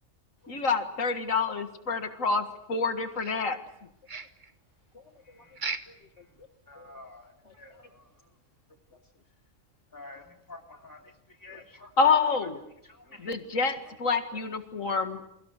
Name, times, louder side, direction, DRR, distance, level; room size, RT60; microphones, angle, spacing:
voice 1, 0.5-3.6 12.0-12.6 13.2-15.3, left 4 dB, 90° left, 7 dB, 2.2 m, -27 dB
sound 1, 3.2-3.8 4.1-4.5 5.5-6.1 6.4-6.5 6.9-7.0 7.5-7.6, right 4 dB, 40° right, 1.4 m, -37 dB
voice 2, 4.9-5.6 5.9-6.5 6.8-7.0 7.4-7.9 8.9-9.0 11.5-11.6 13.0-13.3 13.6-14.0 14.3-14.4, left 4 dB, 60° left, 5 dB, 1.8 m, -55 dB
voice 3, 6.7-7.3 7.6-8.0 9.9-11.1 11.4-11.9 12.9-13.3, left 2 dB, 15° left, 2 dB, 3.1 m, -49 dB
29.5 x 23.5 x 6.6 m, 0.78 s
omnidirectional pair, 1.3 m